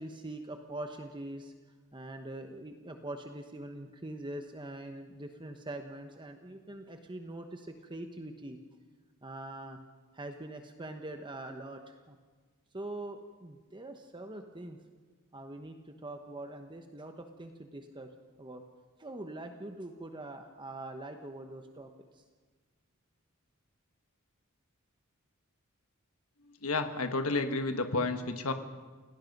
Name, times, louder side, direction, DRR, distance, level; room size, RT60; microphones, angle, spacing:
voice 1, 0.0-1.5 1.9-8.6 9.2-9.8 10.1-12.2 12.7-14.8 15.3-18.1 18.4-18.6 19.0-22.2, right 1 dB, 20° right, 5 dB, 1.0 m, -43 dB
voice 2, 26.6-28.5, left 3 dB, 70° left, 7 dB, 1.4 m, -31 dB
28.5 x 18.0 x 5.4 m, 1.5 s
head